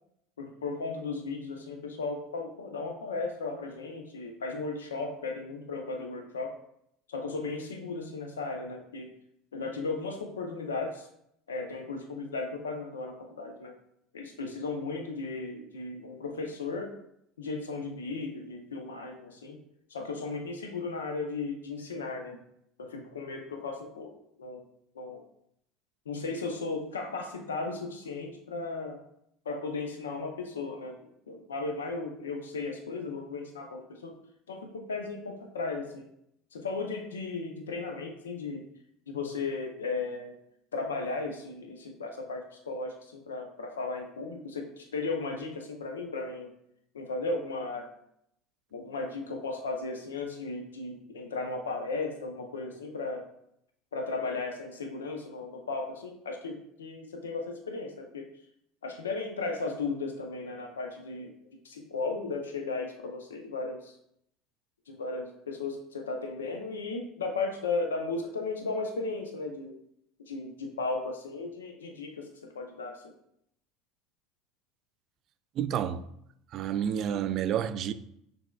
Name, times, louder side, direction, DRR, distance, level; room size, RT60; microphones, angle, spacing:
voice 1, 0.4-6.5 7.1-9.1 9.5-11.1 11.5-13.8 14.1-16.9 17.4-19.6 19.9-22.4 22.8-24.7 24.9-25.2 26.1-29.0 29.5-31.0 31.3-34.1 34.5-36.1 36.5-38.7 39.1-40.4 40.7-46.5 46.9-47.9 48.7-53.3 53.9-58.3 58.8-61.3 61.6-64.0 64.9-69.8 70.3-72.3 72.5-73.1, left 3 dB, 90° left, 0.5 m, -35 dB
voice 2, 75.6-76.0 76.5-77.9, right 9 dB, 50° right, 0.3 m, -29 dB
6.0 x 3.4 x 2.3 m
hypercardioid pair, 75°, 0 cm